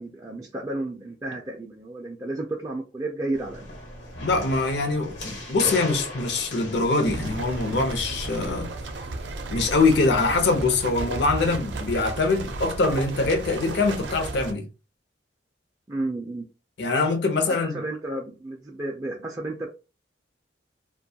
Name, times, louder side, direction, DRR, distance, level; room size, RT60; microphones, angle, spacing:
voice 1, 0.0-3.7 15.9-16.4 17.4-19.7, right 2 dB, 20° right, 0.3 m, -32 dB
sound 1, 3.3-8.6, left 1 dB, 85° left, 1.1 m, -37 dB
voice 2, 4.2-8.7 9.5-14.7 16.8-17.8, left 3 dB, 70° left, 0.6 m, -23 dB
sound 2, 7.0-14.5, right 2 dB, 75° right, 0.5 m, -34 dB
2.5 x 2.2 x 2.7 m
head